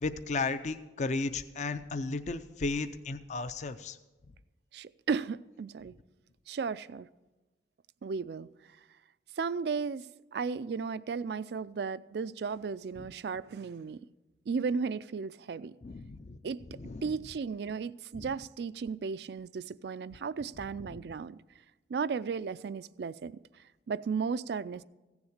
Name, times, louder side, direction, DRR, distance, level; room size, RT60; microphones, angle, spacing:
voice 1, 0.0-4.0 13.0-13.1 15.8-16.4 16.9-17.1 18.1-18.3, left 3 dB, 40° left, 0.4 m, -34 dB
voice 2, 4.7-5.9 6.5-7.1 8.0-8.5 9.4-14.0 14.5-15.7 16.4-16.6 17.0-21.4 21.9-23.3 23.9-24.8, right 5 dB, 65° right, 0.3 m, -35 dB
15.5 x 7.1 x 6.5 m
head